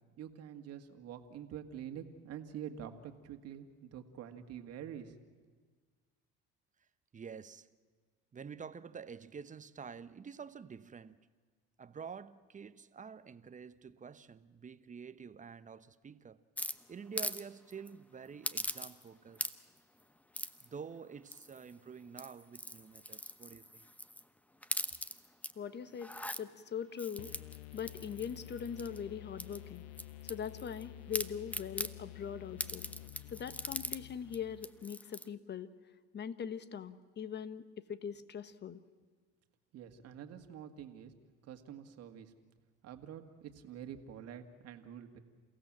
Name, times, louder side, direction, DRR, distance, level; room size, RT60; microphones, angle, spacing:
voice 1, 0.2-5.2 39.7-41.1 41.4-42.3 42.8-45.2, right 9 dB, 55° right, 2.0 m, -47 dB
voice 2, 7.1-7.7 8.3-11.3 11.8-16.4 16.9-19.5 20.6-23.9, right 6 dB, 25° right, 1.0 m, -48 dB
sound 1, 16.6-17.4 17.7-17.9 18.4-19.1 19.3-19.8 20.3-20.7 21.3-21.7 22.1-24.2 24.6-25.5 25.9-26.4 27.0-29.0 29.4-30.8 31.1-31.9 32.6-34.0 34.3-34.4 34.6-35.3, left 1 dB, 5° left, 0.9 m, -40 dB
voice 3, 25.5-26.1 26.4-27.3 27.7-29.9 30.2-32.9 33.3-35.7 36.1-38.8, left 7 dB, 35° left, 1.3 m, -41 dB
sound 2, 27.2-34.9, left 14 dB, 85° left, 0.7 m, -50 dB
28.5 x 16.5 x 7.5 m
supercardioid pair, 90°, 29 cm